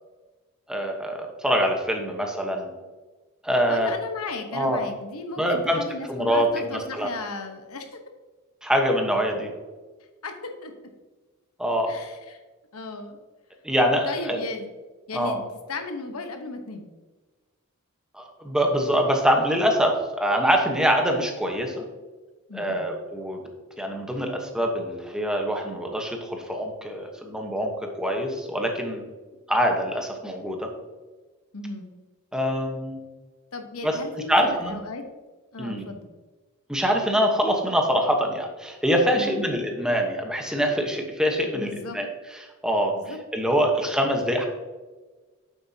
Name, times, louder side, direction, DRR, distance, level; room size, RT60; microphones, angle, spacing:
voice 1, 0.7-2.7 3.4-3.9 4.5-4.8 5.4-5.8 6.1-7.1 8.6-9.5 11.6-11.9 13.6-14.4 15.1-15.4 18.1-21.9 22.5-23.4 23.8-27.7 28.0-29.1 29.5-30.7 32.3-33.0 33.8-34.0 34.3-34.8 35.6-35.8 36.7-44.5, equal, 5° right, 2 dB, 1.1 m, -24 dB
voice 2, 3.7-8.0 10.2-10.7 11.9-12.4 12.7-13.2 14.1-14.7 15.1-16.9 22.5-22.9 31.5-31.9 33.5-35.1 35.5-36.1 39.1-39.5 41.5-42.0 42.9-43.2, left 3 dB, 80° left, 6 dB, 1.1 m, -35 dB
8.9 x 7.8 x 2.8 m, 1.3 s
head